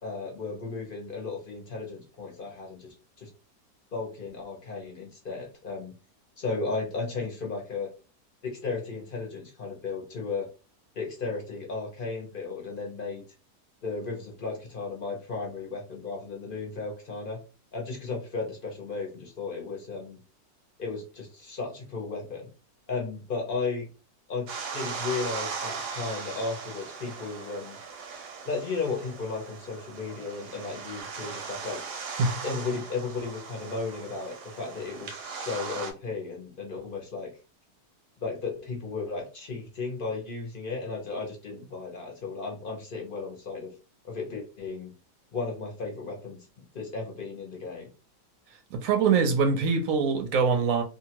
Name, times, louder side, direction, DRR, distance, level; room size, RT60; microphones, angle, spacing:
voice 1, 0.0-3.3 3.9-5.9 6.4-7.9 8.4-10.5 11.0-13.2 13.8-17.4 17.7-20.2 20.8-22.5 22.9-23.9 24.3-24.5 24.7-27.8 28.5-31.8 32.4-37.3 38.2-43.7 44.0-44.9 45.3-46.4 46.7-47.9, left 4 dB, 45° left, 0.7 m, -34 dB
sound 1, 24.5-35.9, right 5 dB, 85° right, 1.2 m, -38 dB
voice 2, 48.7-50.8, right 5 dB, 70° right, 0.9 m, -23 dB
2.8 x 2.3 x 2.8 m
omnidirectional pair, 1.7 m